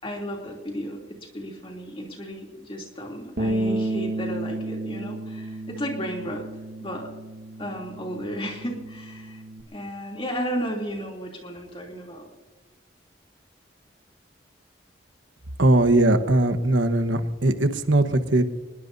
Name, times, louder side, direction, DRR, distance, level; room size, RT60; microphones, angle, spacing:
voice 1, 0.0-6.5 6.8-7.1 7.6-9.4 9.7-12.3, equal, 30° left, 0 dB, 3.0 m, -33 dB
Bass guitar, 3.4-9.6, right 1 dB, 60° right, 1.6 m, -32 dB
voice 2, 15.6-18.4, right 1 dB, 85° right, 8 dB, 1.2 m, -20 dB
23.0 x 21.0 x 2.7 m, 1.3 s
head